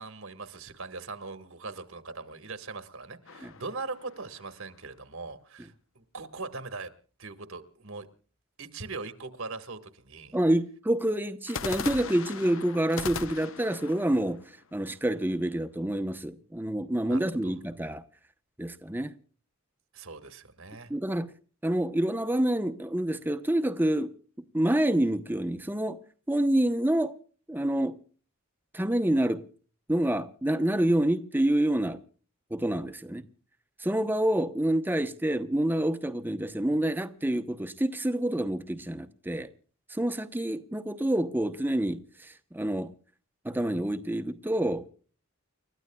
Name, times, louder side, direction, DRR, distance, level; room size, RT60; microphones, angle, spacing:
voice 1, 0.0-6.9 7.2-8.1 8.6-10.4 17.1-17.5 19.9-20.9, right 3 dB, 75° right, 1.7 m, -40 dB
sound 1, 3.3-4.7 11.5-15.4, left 5 dB, 65° left, 0.8 m, -39 dB
voice 2, 10.3-14.4 14.7-18.0 18.6-19.1 20.9-21.3 21.6-24.1 24.5-26.0 26.3-27.1 27.5-27.9 28.7-29.4 29.9-32.0 32.5-33.2 33.8-39.5 39.9-42.9 43.4-44.9, right 1 dB, 10° right, 0.8 m, -27 dB
30.0 x 13.5 x 2.3 m
head